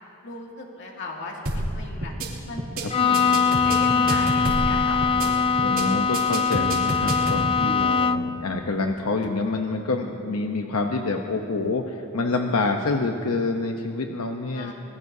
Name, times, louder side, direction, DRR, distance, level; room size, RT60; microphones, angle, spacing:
voice 1, 0.2-2.1 2.5-2.6 3.0-3.1 3.4-5.6 14.5-14.7, left 2 dB, 60° left, -1 dB, 2.4 m, -37 dB
sound 1, 1.5-1.7 2.0-2.3 2.6-2.8 3.1-4.7 5.0-5.3 5.6-5.8 6.1-7.4, right 1 dB, 65° right, 3.1 m, -28 dB
Bowed string instrument, 2.9-8.4, left 5 dB, 25° left, 0.3 m, -22 dB
voice 2, 3.1-3.4 5.6-14.7, left 3 dB, 90° left, 3 dB, 0.9 m, -27 dB
25.5 x 20.5 x 2.8 m, 2.6 s
head